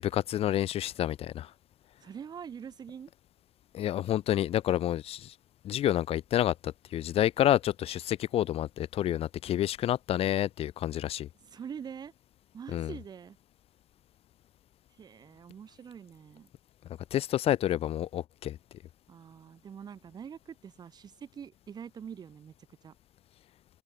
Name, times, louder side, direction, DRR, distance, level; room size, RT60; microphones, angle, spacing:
voice 1, 0.0-1.5 3.7-5.3 5.6-11.3 12.7-12.9 17.1-18.6, left 12 dB, 65° left, 0.4 m, -29 dB
voice 2, 2.0-3.1 11.4-12.1 12.5-13.4 15.0-16.5 19.1-22.6 22.8-22.9, right 7 dB, 40° right, 0.6 m, -44 dB
open air
wide cardioid pair, 165°, 11 cm